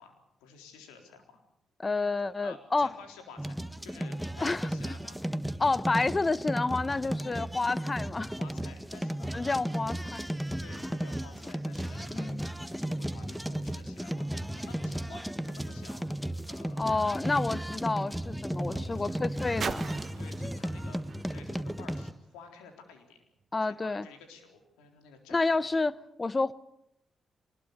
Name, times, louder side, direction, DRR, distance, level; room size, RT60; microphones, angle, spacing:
voice 1, 0.0-1.4 2.4-5.2 7.2-7.4 8.4-9.3 10.6-16.1 16.4-16.9 18.7-19.3 20.2-21.0 21.3-23.3 23.6-25.7, left 5 dB, 90° left, 3.9 m, -52 dB
voice 2, 1.8-2.9 4.4-4.7 5.6-8.3 9.3-10.3 12.1-12.5 16.8-19.9 23.5-24.0 25.3-25.9 26.2-26.5, left 3 dB, 30° left, 1.1 m, -29 dB
sound 1, 3.4-22.1, right 1 dB, 5° right, 1.5 m, -35 dB
sound 2, 17.9-22.6 23.4-23.5, right 6 dB, 55° right, 1.0 m, -44 dB
23.5 x 20.5 x 6.8 m
hypercardioid pair, 45°, 0 cm